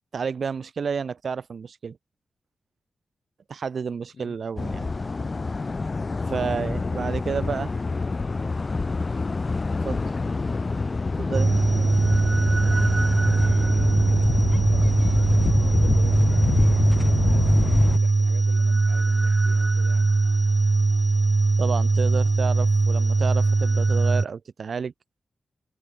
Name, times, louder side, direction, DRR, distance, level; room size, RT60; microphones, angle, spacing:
voice 1, 0.1-2.0 3.5-4.9 6.3-7.7 9.8-10.0 11.2-11.5 21.6-24.9, right 6 dB, 55° right, 1.4 m, -30 dB
sound 1, 4.6-18.0, left 3 dB, 30° left, 1.9 m, -25 dB
voice 2, 7.2-7.7 7.9-8.4 10.0-10.6 13.2-20.1, left 5 dB, 55° left, 7.3 m, -46 dB
sound 2, 11.3-24.2, right 3 dB, 25° right, 0.3 m, -21 dB
wide cardioid pair, 125°, 0 cm